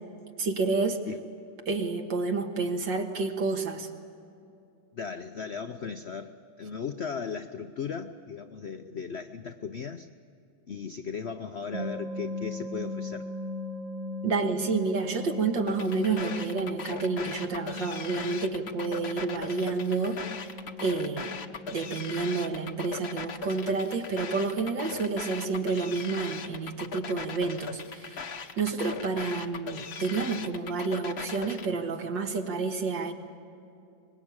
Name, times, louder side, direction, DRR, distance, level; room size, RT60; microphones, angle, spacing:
voice 1, 0.4-1.0 1.7-3.9 14.2-20.2 20.8-21.4 21.7-28.3 28.6-33.1, right 4 dB, 70° right, 4 dB, 2.4 m, -29 dB
voice 2, 4.9-10.1 10.7-13.3, left 6 dB, 65° left, 8 dB, 0.6 m, -37 dB
sound 1, 11.7-26.6, left 2 dB, 30° right, 0.8 m, -40 dB
sound 2, 15.7-31.7, left 5 dB, 45° left, 0.9 m, -39 dB
24.5 x 21.0 x 8.8 m, 2.6 s
omnidirectional pair, 2.1 m